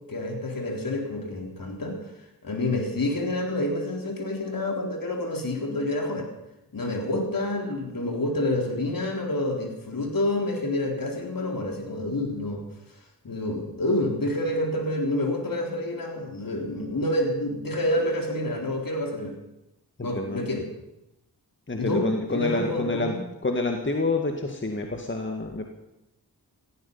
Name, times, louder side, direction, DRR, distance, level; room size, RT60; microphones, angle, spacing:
voice 1, 0.1-2.0 2.4-6.3 6.7-12.6 13.2-19.3 20.0-20.7 21.8-23.2, left 1 dB, 55° left, 2 dB, 3.9 m, -28 dB
voice 2, 21.7-23.1 23.4-25.6, left 3 dB, 30° left, 3 dB, 2.0 m, -28 dB
17.0 x 14.0 x 5.6 m, 0.90 s
cardioid pair, 50°, 40 cm